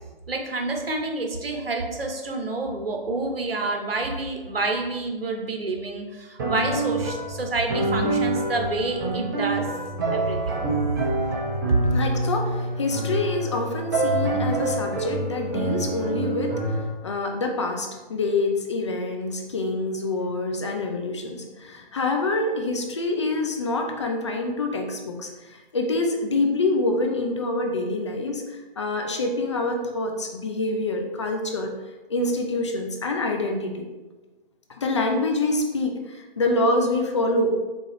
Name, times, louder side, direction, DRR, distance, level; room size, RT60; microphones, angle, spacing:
voice 1, 0.3-9.7 10.1-10.4 11.9-12.0, right 2 dB, 75° right, 3 dB, 1.0 m, -28 dB
sound 1, 6.4-16.8, right 2 dB, 20° right, 0.6 m, -26 dB
voice 2, 11.9-28.4 28.8-31.7 32.1-33.9 34.7-37.6, left 2 dB, 30° left, 3 dB, 0.4 m, -26 dB
4.7 x 3.7 x 3.0 m, 1.2 s
figure-of-eight pair, 140°, 29 cm